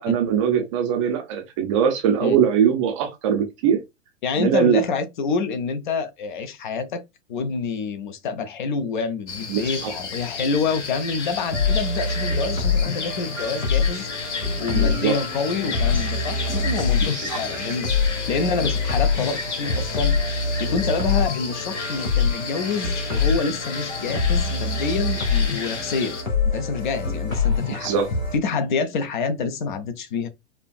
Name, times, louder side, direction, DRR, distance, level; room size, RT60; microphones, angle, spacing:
voice 1, 0.0-3.8 4.4-4.8 9.5-9.9 14.7-15.2 17.1-17.4 27.8-28.1, right 8 dB, 25° right, 0.5 m, -21 dB
voice 2, 4.2-7.0 7.3-14.1 14.6-17.9 18.3-20.2 20.6-26.2 26.5-27.9 28.3-30.3, left 4 dB, 40° left, 0.6 m, -27 dB
sound 1, 9.3-26.2, left 5 dB, 60° left, 1.1 m, -33 dB
sound 2, 11.5-28.4, left 4 dB, 85° left, 1.4 m, -25 dB
4.4 x 2.4 x 2.4 m
figure-of-eight pair, 105°, 39 cm